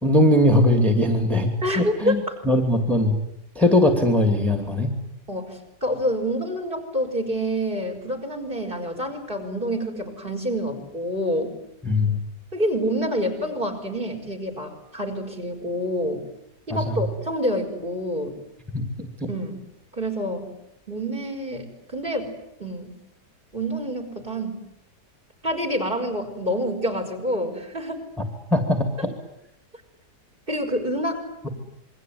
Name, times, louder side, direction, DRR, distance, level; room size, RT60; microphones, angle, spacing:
voice 1, 0.0-3.2 3.5-4.9 11.8-12.2 16.7-17.0 18.7-19.3 28.5-29.1, left 1 dB, ahead, 5 dB, 2.5 m, -20 dB
voice 2, 1.6-2.3 5.3-11.5 12.5-16.2 16.7-18.3 19.3-19.6 19.9-20.5 20.9-22.3 22.6-22.9 23.5-24.6 25.4-28.0 30.5-31.5, equal, 30° right, 6 dB, 5.1 m, -27 dB
27.5 x 23.0 x 9.4 m, 0.81 s
omnidirectional pair, 1.8 m